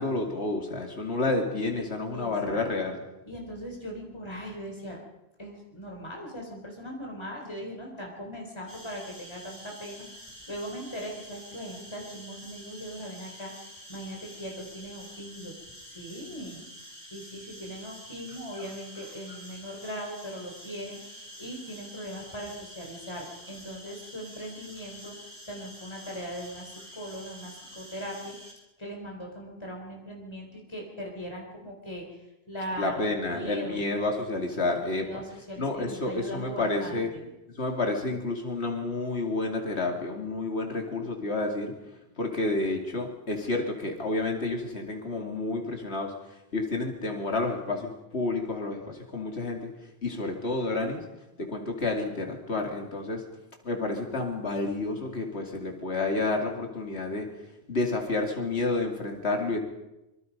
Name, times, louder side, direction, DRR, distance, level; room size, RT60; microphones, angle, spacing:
voice 1, 0.0-3.0 32.8-35.2 35.6-37.1 37.5-41.7 42.2-46.1 46.5-49.7 50.0-51.1 51.4-53.2 53.6-57.3 57.7-59.6, left 2 dB, 85° left, 2 dB, 2.9 m, -30 dB
voice 2, 2.1-2.6 3.2-5.0 5.4-15.5 15.9-16.8 17.1-28.3 28.8-33.8 34.8-37.3, equal, 25° left, 0 dB, 4.2 m, -40 dB
sound 1, 8.7-28.5, equal, 20° right, 5.8 m, -47 dB
25.5 x 24.5 x 5.4 m, 0.95 s
omnidirectional pair, 1.1 m